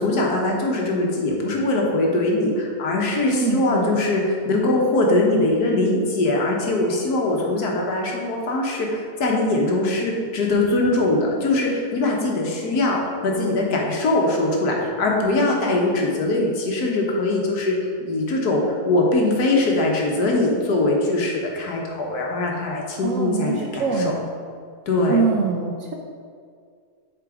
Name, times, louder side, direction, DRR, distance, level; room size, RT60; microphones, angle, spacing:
voice 1, 0.0-17.7 18.0-24.1 24.9-25.2, left 2 dB, 80° left, -1 dB, 1.6 m, -22 dB
voice 2, 3.2-4.0 23.0-24.3 25.1-25.9, right 5 dB, 65° right, 1 dB, 0.9 m, -24 dB
7.4 x 3.9 x 4.9 m, 2.1 s
omnidirectional pair, 1.6 m